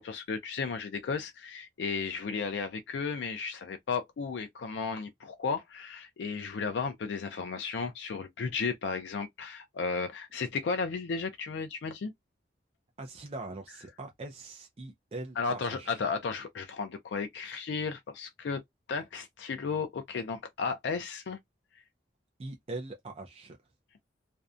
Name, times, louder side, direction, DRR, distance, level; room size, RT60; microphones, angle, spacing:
voice 1, 0.0-12.1 15.4-18.6 18.9-21.4 21.7-21.8, left 5 dB, 80° left, 0.4 m, -34 dB
voice 2, 13.0-16.0 22.4-23.6, right 2 dB, 35° right, 0.4 m, -42 dB
2.6 x 2.1 x 2.3 m
head